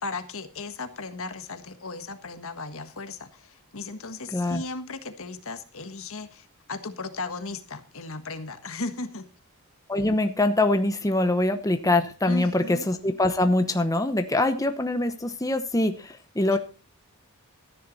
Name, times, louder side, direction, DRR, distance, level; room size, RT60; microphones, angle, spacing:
voice 1, 0.0-9.3 12.2-12.9 16.5-16.6, left 3 dB, 65° left, 9 dB, 1.5 m, -36 dB
voice 2, 4.3-4.6 9.9-16.6, left 2 dB, 15° left, 8 dB, 0.9 m, -24 dB
14.0 x 10.5 x 4.1 m, 0.33 s
head